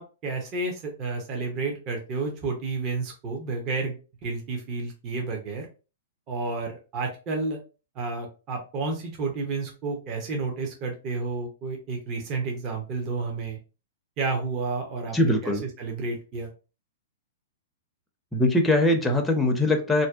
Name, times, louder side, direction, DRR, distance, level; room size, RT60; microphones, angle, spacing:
voice 1, 0.0-5.7 6.3-7.6 8.0-13.6 14.2-15.2 15.4-15.5 15.8-16.5, right 3 dB, 35° right, 1 dB, 0.6 m, -31 dB
voice 2, 15.1-15.6 18.3-20.1, left 2 dB, 5° left, 2 dB, 0.5 m, -22 dB
2.6 x 2.1 x 2.3 m, 0.33 s
hypercardioid pair, 120°, 0 cm